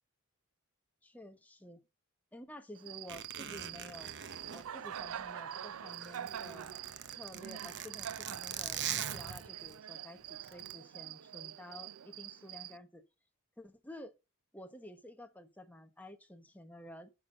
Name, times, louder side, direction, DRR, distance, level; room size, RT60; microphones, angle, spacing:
voice 1, 1.0-1.8 2.3-4.1 4.5-6.8 7.1-13.0 13.6-14.1 14.5-17.1, left 1 dB, 10° left, 1.3 m, -51 dB
Cricket, 2.7-12.8, right 10 dB, 70° right, 0.4 m, -45 dB
Zipper (clothing), 3.1-5.5 5.8-9.8 10.4-10.7, right 9 dB, 55° right, 0.9 m, -42 dB
9.6 x 5.9 x 6.9 m
head